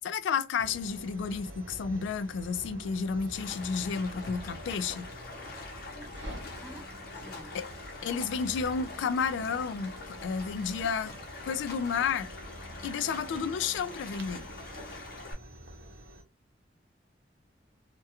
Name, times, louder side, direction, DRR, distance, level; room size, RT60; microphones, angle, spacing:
voice 1, 0.0-5.1 7.5-7.7 8.0-11.1 11.4-12.3 12.8-14.4, left 6 dB, 80° left, 0.3 m, -31 dB
sound 1, 0.6-16.2, equal, 80° right, 0.7 m, -48 dB
sound 2, 1.5-16.2, equal, 35° right, 0.7 m, -52 dB
Stream, 3.3-15.3, left 3 dB, 55° left, 0.7 m, -44 dB
voice 2, 5.9-7.6, right 1 dB, 10° right, 0.3 m, -51 dB
2.3 x 2.2 x 2.8 m
head